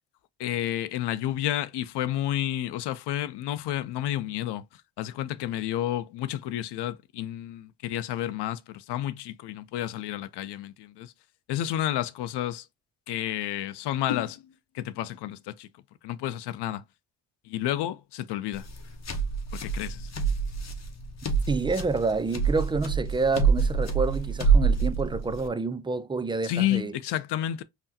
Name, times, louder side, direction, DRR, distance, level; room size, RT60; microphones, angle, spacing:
voice 1, 0.4-4.6 5.0-11.1 11.5-12.7 13.1-15.7 16.0-16.8 17.5-18.7 19.6-20.1 26.4-27.6, left 12 dB, 80° left, 0.6 m, -30 dB
sound 1, 18.5-25.5, right 5 dB, 40° left, 0.8 m, -26 dB
voice 2, 21.5-26.9, right 3 dB, 15° right, 0.3 m, -28 dB
5.7 x 2.1 x 2.7 m
cardioid pair, 90°, 41 cm